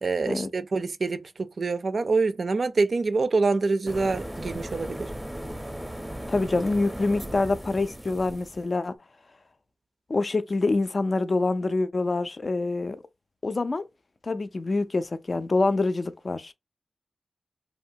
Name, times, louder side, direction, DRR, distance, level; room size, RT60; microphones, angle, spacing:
voice 1, 0.0-1.3 1.6-5.1, right 3 dB, 70° right, 0.3 m, -25 dB
sound 1, 3.9-8.6, equal, 5° right, 0.6 m, -37 dB
voice 2, 6.3-8.9 10.1-13.0 13.4-13.8 14.2-16.5, left 3 dB, 55° left, 0.3 m, -26 dB
2.7 x 2.2 x 2.7 m
cardioid pair, 40°, 0 cm